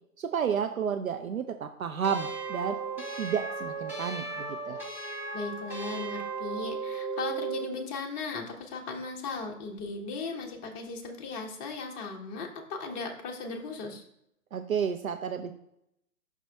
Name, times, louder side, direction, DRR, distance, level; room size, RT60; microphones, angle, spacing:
voice 1, 0.2-2.8 3.2-4.8 14.5-15.5, right 7 dB, 65° right, 7 dB, 0.7 m, -31 dB
sound 1, 2.0-7.7, right 4 dB, 5° right, 1.5 m, -36 dB
voice 2, 5.3-14.1, left 4 dB, 20° left, 1 dB, 1.0 m, -37 dB
6.0 x 5.9 x 3.4 m, 0.80 s
figure-of-eight pair, 120°, 45 cm